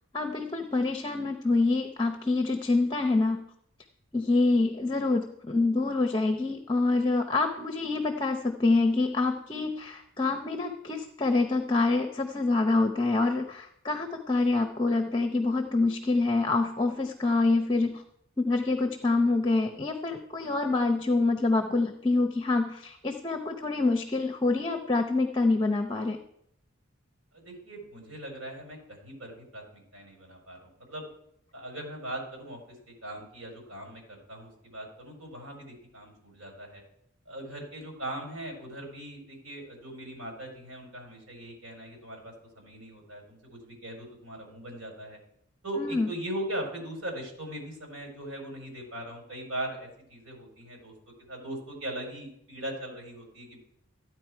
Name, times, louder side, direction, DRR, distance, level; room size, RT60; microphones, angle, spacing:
voice 1, 0.1-3.4 4.1-18.0 18.4-26.2 45.8-46.1, left 3 dB, 20° left, 5 dB, 0.8 m, -26 dB
voice 2, 27.3-31.1 31.5-32.6 32.9-36.8 37.3-45.2 45.6-50.9 51.3-53.6, right 1 dB, 85° right, 1 dB, 4.5 m, -40 dB
14.0 x 9.7 x 4.6 m, 0.73 s
head